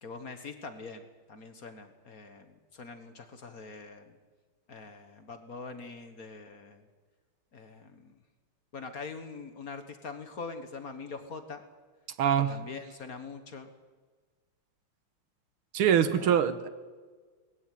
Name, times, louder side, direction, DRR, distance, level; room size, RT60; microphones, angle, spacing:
voice 1, 0.0-4.2 4.7-6.8 7.5-8.2 8.7-11.6 12.5-13.7 16.1-16.3, left 4 dB, 45° left, 8 dB, 1.7 m, -43 dB
voice 2, 12.2-12.6 15.7-16.7, right 8 dB, 75° right, 12 dB, 2.0 m, -24 dB
20.0 x 15.0 x 9.3 m, 1.4 s
omnidirectional pair, 2.4 m